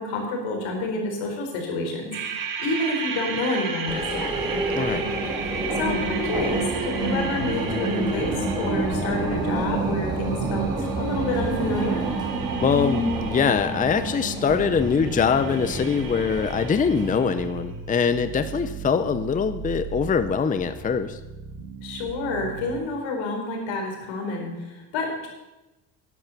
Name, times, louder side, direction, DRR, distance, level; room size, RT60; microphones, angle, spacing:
voice 1, 0.0-4.3 5.7-12.0 21.8-25.3, left 2 dB, 85° left, 2 dB, 4.3 m, -29 dB
sound 1, 2.1-17.4, right 4 dB, 45° right, 2.1 m, -31 dB
sound 2, 3.9-17.4, right 1 dB, 10° right, 2.2 m, -30 dB
voice 2, 4.8-5.1 12.6-21.2, left 6 dB, 20° left, 11 dB, 0.6 m, -23 dB
sound 3, 5.8-22.8, right 4 dB, 80° right, 2.2 m, -39 dB
11.5 x 11.0 x 7.0 m, 1.0 s
cardioid pair, 120°, 45 cm